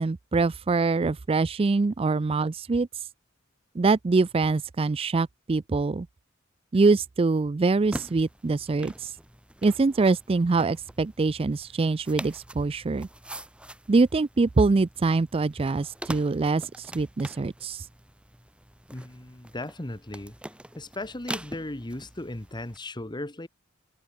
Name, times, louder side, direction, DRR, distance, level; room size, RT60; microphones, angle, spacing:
voice 1, 0.0-2.9 3.8-6.1 6.7-9.1 9.6-13.1 13.9-17.9, right 3 dB, 30° right, 0.4 m, -24 dB
sound 1, 7.8-22.8, right 1 dB, 5° right, 4.8 m, -43 dB
voice 2, 18.9-20.3 20.7-23.5, left 1 dB, 20° left, 1.4 m, -36 dB
head